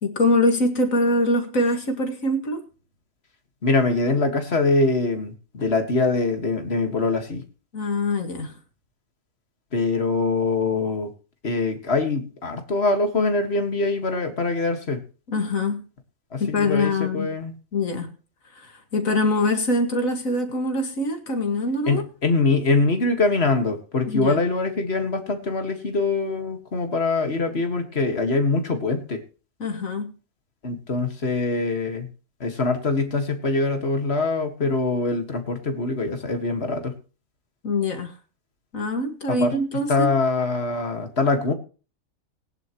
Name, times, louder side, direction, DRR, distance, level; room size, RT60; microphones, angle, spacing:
voice 1, 0.0-2.7 7.7-8.6 15.3-15.9 16.4-17.3 17.7-18.1 18.5-22.0 24.1-24.4 29.6-30.1 37.6-38.2 38.7-40.1, left 2 dB, 70° left, 5 dB, 2.4 m, -24 dB
voice 2, 3.6-7.4 9.7-11.1 11.4-15.0 16.3-17.5 21.9-29.2 30.6-32.1 32.4-36.9 39.3-39.5 39.9-41.5, left 3 dB, 50° left, 6 dB, 2.1 m, -23 dB
19.0 x 10.5 x 3.1 m, 0.35 s
omnidirectional pair, 1.5 m